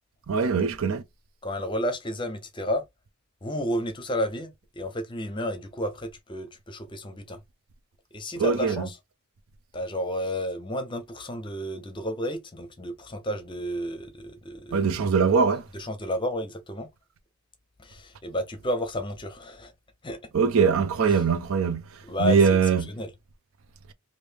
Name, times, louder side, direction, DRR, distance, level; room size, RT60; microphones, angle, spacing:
voice 1, 0.3-1.0 8.3-8.8 14.7-15.6 20.3-21.8 22.2-22.8, right 6 dB, 65° right, 0.4 m, -22 dB
voice 2, 1.4-2.8 3.4-7.4 8.1-9.0 9.7-14.9 15.7-16.9 17.8-19.7 20.0-20.2 21.1-21.2 22.0-22.6 22.9-23.1, left 1 dB, 20° left, 0.7 m, -31 dB
3.2 x 2.6 x 3.3 m
head